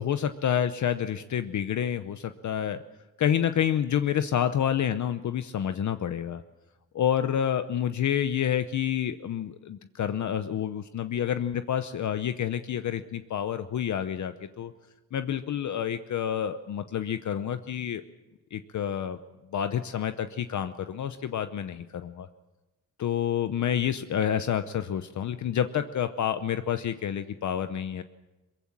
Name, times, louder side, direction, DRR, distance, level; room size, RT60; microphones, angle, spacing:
voice 1, 0.0-2.8 3.2-6.4 6.9-14.7 15.1-18.0 18.5-19.2 19.5-22.3 23.0-28.0, left 9 dB, 50° left, 10 dB, 0.8 m, -28 dB
23.0 x 22.5 x 7.4 m, 1.1 s
wide cardioid pair, 165°, 37 cm